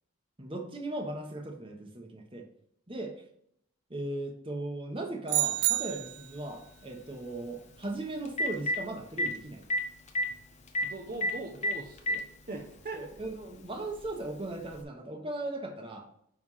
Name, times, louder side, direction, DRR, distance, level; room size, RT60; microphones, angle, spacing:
voice 1, 0.4-2.5 2.9-3.1 3.9-9.6 12.9-16.1, right 2 dB, 25° right, 2 dB, 1.2 m, -38 dB
sound 1, 5.3-6.4, right 18 dB, 80° right, 0.3 m, -29 dB
Telephone, 5.6-5.7 7.8-7.9 8.2-8.8 9.2-9.3 9.7-9.8 10.1-10.3 10.7-10.9 11.2-11.3 11.6-12.2 13.2-13.3 14.7-14.8, equal, 30° left, 0.9 m, -28 dB
voice 2, 10.8-13.1, right 2 dB, 40° right, 0 dB, 0.9 m, -41 dB
9.7 x 3.5 x 5.7 m, 0.71 s
head